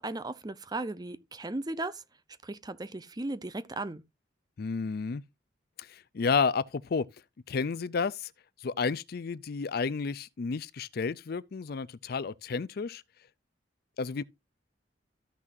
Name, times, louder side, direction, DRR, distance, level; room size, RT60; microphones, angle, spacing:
voice 1, 0.0-2.0 2.4-4.0, right 2 dB, 20° right, 0.7 m, -36 dB
voice 2, 4.6-5.2 5.8-7.1 7.5-8.3 8.6-13.0 14.0-14.2, left 5 dB, 55° left, 0.4 m, -31 dB
13.5 x 6.1 x 2.6 m
head